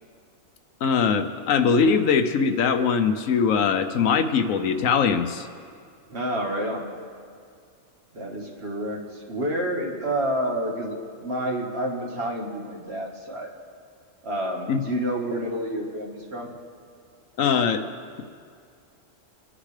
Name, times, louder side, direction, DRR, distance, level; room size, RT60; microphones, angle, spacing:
voice 1, 0.8-5.5 14.7-14.8 17.4-17.8, left 6 dB, 80° left, 9 dB, 1.1 m, -21 dB
voice 2, 6.1-6.9 8.1-13.5 14.2-16.5, right 1 dB, 50° right, 0 dB, 1.7 m, -29 dB
25.0 x 9.8 x 3.3 m, 2.2 s
omnidirectional pair, 1.4 m